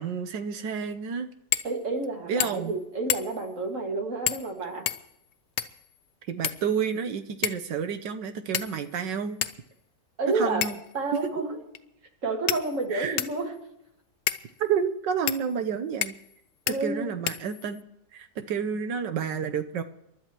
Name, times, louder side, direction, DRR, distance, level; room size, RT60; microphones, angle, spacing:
voice 1, 0.0-1.3 2.3-2.7 6.3-9.4 10.3-10.8 12.9-13.2 14.6-16.2 16.7-17.8 18.1-19.8, right 7 dB, 85° right, 8 dB, 1.6 m, -30 dB
sound 1, 1.5-1.7 2.0-2.1 2.4-2.7 3.1-3.5 4.3-4.5 4.9-5.9 6.4-7.0 7.4-7.7 8.5-9.0 9.4-9.6 10.6-10.9 11.7-11.8 12.5-13.4 14.3-14.4 15.3-15.4 16.0-16.3 16.7-16.8 17.3-17.8, left 12 dB, 85° left, 1.3 m, -30 dB
voice 2, 1.6-4.9 10.2-10.6 10.9-11.6 12.2-13.6 16.7-17.1, right 3 dB, 45° right, 2 dB, 2.3 m, -30 dB
27.5 x 12.0 x 3.0 m, 0.83 s
omnidirectional pair, 1.9 m